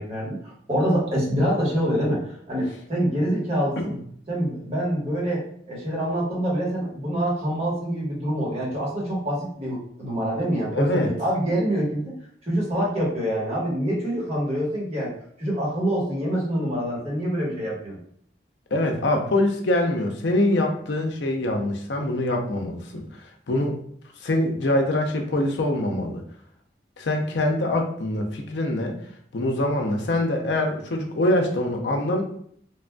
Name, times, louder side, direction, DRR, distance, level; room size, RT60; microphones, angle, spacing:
voice 1, 0.0-3.9 4.3-5.4 5.7-12.1 12.5-15.1 15.4-18.0, equal, 35° right, -5 dB, 1.2 m, -25 dB
voice 2, 10.7-11.1 18.7-23.8 24.2-26.2 27.0-29.0 29.3-32.2, left 1 dB, 80° left, 3 dB, 0.5 m, -24 dB
3.3 x 2.5 x 2.2 m, 0.63 s
head